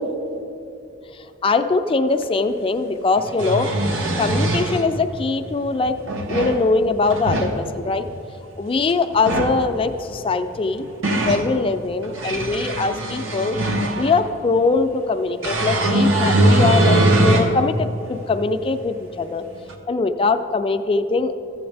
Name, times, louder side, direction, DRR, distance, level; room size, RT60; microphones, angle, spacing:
voice 1, 1.4-3.7 4.2-5.9 6.3-8.1 8.6-10.9 11.2-13.6 14.0-19.4 19.9-21.3, left 3 dB, 30° left, 8 dB, 0.4 m, -22 dB
sound 1, 2.2-2.3 3.2-4.8 5.8-6.6 7.0-7.5 9.1-9.6 10.5-11.5 12.0-14.2 15.4-17.5 18.1-18.2 19.7-19.8, right 1 dB, 80° right, 0.9 m, -20 dB
14.0 x 7.8 x 3.3 m, 2.7 s
head